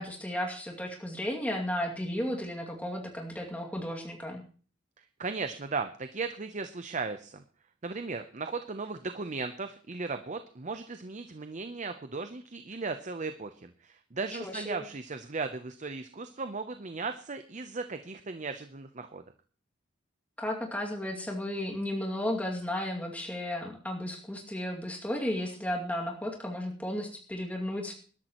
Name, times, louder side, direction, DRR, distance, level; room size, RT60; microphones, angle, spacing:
voice 1, 0.0-4.4 14.4-14.8 20.4-27.9, left 1 dB, 5° left, 0 dB, 2.4 m, -34 dB
voice 2, 5.2-7.4 7.8-19.2, right 4 dB, 40° right, 9 dB, 0.7 m, -36 dB
20.5 x 12.0 x 3.0 m, 0.41 s
head